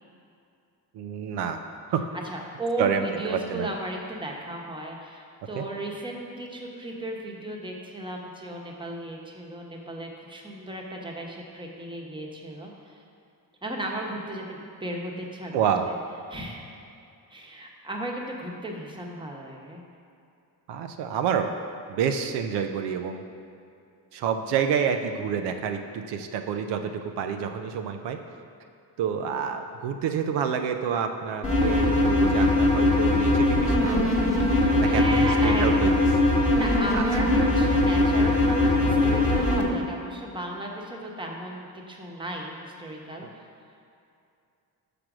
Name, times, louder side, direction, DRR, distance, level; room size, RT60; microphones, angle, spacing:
voice 1, 0.9-1.6 1.9-2.0 2.8-3.7 5.5-5.6 15.5-15.9 20.7-21.5 21.9-23.2 24.1-28.2 29.0-34.3 34.8-35.9 36.9-37.0 43.2-43.3, right 7 dB, 85° right, 6 dB, 0.6 m, -28 dB
voice 2, 2.2-12.7 13.6-15.6 16.3-16.6 17.3-19.8 29.3-29.4 34.4-36.1 36.4-43.3, right 1 dB, 10° right, -1 dB, 1.1 m, -35 dB
sound 1, 31.4-39.6, left 2 dB, 15° left, 1.3 m, -21 dB
6.0 x 5.0 x 6.1 m, 2.6 s
cardioid pair, 95°, 40 cm